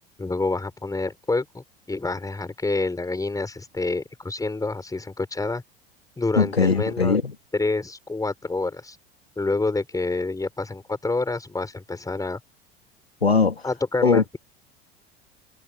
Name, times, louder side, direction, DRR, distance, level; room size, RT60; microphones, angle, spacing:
voice 1, 0.2-5.6 6.2-7.2 7.5-9.0 9.4-12.4 13.6-14.4, left 3 dB, 10° left, 5.9 m, -27 dB
voice 2, 6.4-7.2 13.2-13.5 14.0-14.2, left 4 dB, 90° left, 2.1 m, -19 dB
figure-of-eight pair, 75°, 30 cm